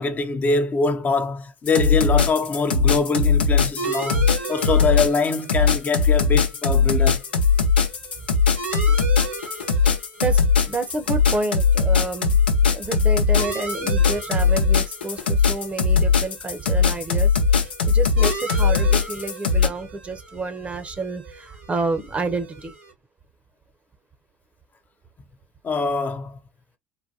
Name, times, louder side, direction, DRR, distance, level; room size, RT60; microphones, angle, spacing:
voice 1, 0.0-7.2 25.6-26.4, left 4 dB, 35° left, 0.7 m, -24 dB
sound 1, 1.7-19.7, left 5 dB, 90° left, 0.8 m, -19 dB
sound 2, 3.8-22.9, right 3 dB, 85° right, 1.2 m, -37 dB
voice 2, 10.2-12.3 12.7-17.3 17.6-22.7, right 3 dB, 25° right, 0.8 m, -29 dB
3.9 x 2.2 x 2.7 m
hypercardioid pair, 75°, 5 cm